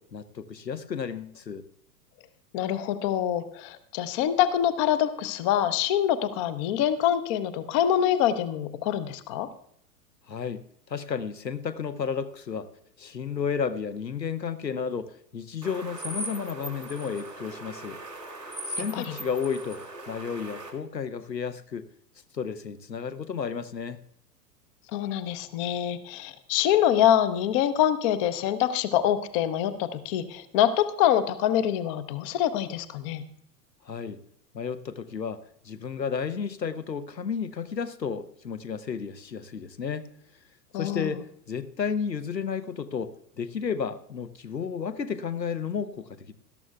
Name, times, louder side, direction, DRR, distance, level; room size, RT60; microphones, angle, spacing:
voice 1, 0.0-1.6 10.3-10.6 10.9-12.7 13.0-18.0 18.7-19.8 20.1-21.8 22.3-24.0 33.8-34.2 34.5-40.1 40.7-46.3, left 6 dB, 85° left, 12 dB, 0.9 m, -32 dB
voice 2, 2.5-9.5 18.8-19.2 24.9-33.3 40.7-41.2, left 10 dB, 20° left, 14 dB, 0.5 m, -25 dB
sound 1, 15.6-20.7, right 1 dB, 80° right, 2.6 m, -39 dB
18.0 x 13.0 x 2.3 m, 0.71 s
figure-of-eight pair, 100°, 49 cm